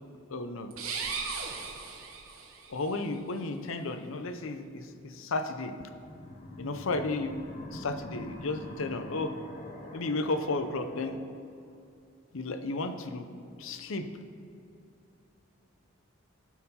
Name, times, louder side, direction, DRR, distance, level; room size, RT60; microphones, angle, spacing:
voice 1, 0.3-0.7 2.7-5.7 6.6-7.3 7.7-9.3 9.9-11.2 12.3-13.3 13.6-14.1, left 2 dB, 65° left, 8 dB, 0.7 m, -33 dB
sound 1, 0.7-2.7, right 5 dB, 75° right, 1.2 m, -37 dB
sound 2, 6.1-11.2, left 1 dB, 35° left, 0.8 m, -44 dB
12.0 x 4.6 x 5.6 m, 2.6 s
head